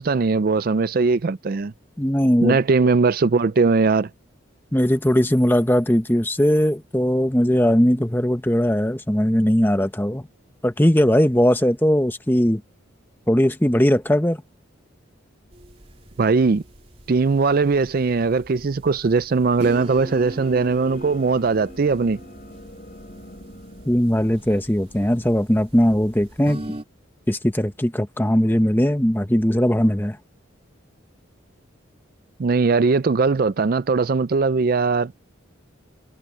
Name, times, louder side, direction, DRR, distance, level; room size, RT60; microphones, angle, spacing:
voice 1, 0.0-1.7 2.4-4.1 16.2-16.6 17.1-22.2 32.4-35.1, right 4 dB, 45° right, 0.4 m, -20 dB
voice 2, 2.0-2.6 4.7-10.2 10.6-12.6 13.3-14.4 23.9-26.6 27.3-30.2, equal, 10° left, 1.1 m, -19 dB
sound 1, 15.5-26.8, right 1 dB, 30° right, 3.3 m, -40 dB
sound 2, 19.9-26.5, left 1 dB, 40° left, 7.2 m, -46 dB
head